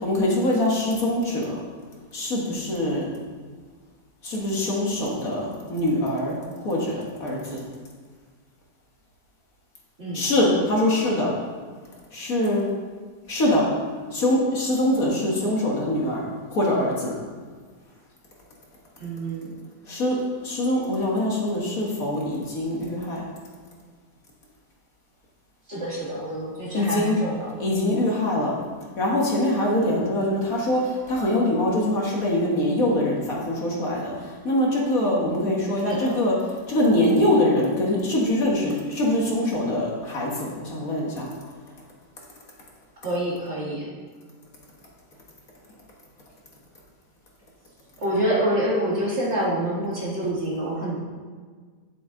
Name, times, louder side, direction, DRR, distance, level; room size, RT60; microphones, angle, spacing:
voice 1, 0.0-1.6 2.1-3.1 4.2-7.6 10.1-11.3 12.1-12.7 13.3-13.7 14.1-17.1 19.9-23.2 26.7-27.2 27.6-28.6 29.0-36.4 36.7-41.3, left 1 dB, 55° left, -3 dB, 1.8 m, -23 dB
voice 2, 19.0-19.5 25.7-27.5 35.9-36.2 43.0-43.9 48.0-51.0, right 1 dB, 40° right, -5 dB, 2.0 m, -27 dB
8.9 x 7.6 x 3.8 m, 1.5 s
omnidirectional pair, 1.9 m